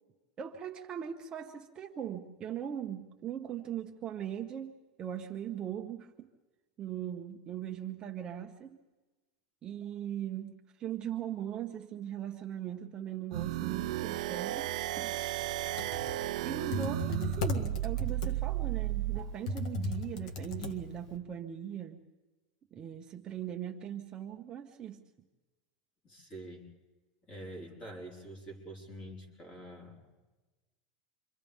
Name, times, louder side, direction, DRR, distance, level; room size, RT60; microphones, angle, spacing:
voice 1, 0.4-6.3 6.8-8.8 9.6-15.6 16.4-22.0 22.7-25.0, right 9 dB, 20° right, 3 dB, 0.9 m, -40 dB
sound 1, 13.3-19.2, right 15 dB, 70° right, 0.5 m, -34 dB
Computer keyboard, 15.6-21.2, left 2 dB, 65° left, 1.9 m, -37 dB
voice 2, 26.0-26.7 27.3-30.1, right 1 dB, 25° left, 0 dB, 4.9 m, -46 dB
29.5 x 25.5 x 3.6 m, 1.2 s
supercardioid pair, 165°, 4 cm